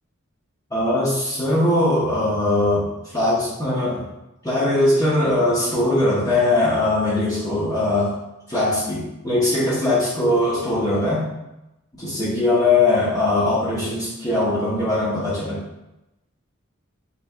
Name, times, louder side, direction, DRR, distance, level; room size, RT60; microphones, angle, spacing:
voice 1, 0.7-4.0 4.4-8.1 8.5-11.2 12.0-15.6, left 2 dB, 15° left, -9 dB, 1.1 m, -20 dB
5.8 x 3.3 x 2.4 m, 0.94 s
head